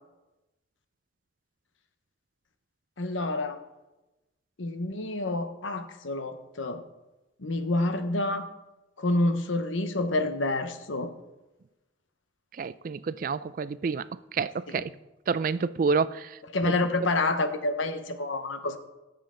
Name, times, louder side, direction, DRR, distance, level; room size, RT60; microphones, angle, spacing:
voice 1, 3.0-3.6 4.6-6.8 7.4-8.5 9.0-11.1 14.7-14.8 16.5-18.8, left 2 dB, 80° left, 0.9 m, -28 dB
voice 2, 12.6-14.1 14.3-14.9 15.3-16.4, right 5 dB, 45° right, 0.3 m, -28 dB
17.5 x 7.0 x 3.8 m
head